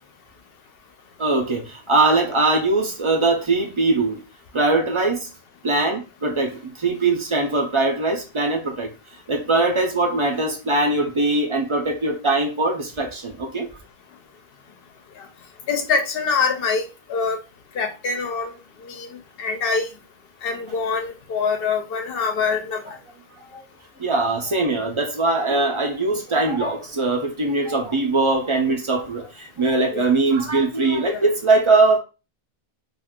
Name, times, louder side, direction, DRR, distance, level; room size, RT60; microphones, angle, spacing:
voice 1, 1.2-4.2 4.5-5.3 5.6-8.9 9.3-13.7 23.5-23.6 24.0-32.0, right 3 dB, 40° right, 0.5 m, -21 dB
voice 2, 15.7-17.4 17.8-18.5 18.9-19.1 19.4-19.9 20.4-22.8 29.9-30.1 31.1-31.2, left 5 dB, 70° left, 0.8 m, -24 dB
2.4 x 2.4 x 3.5 m
omnidirectional pair, 1.0 m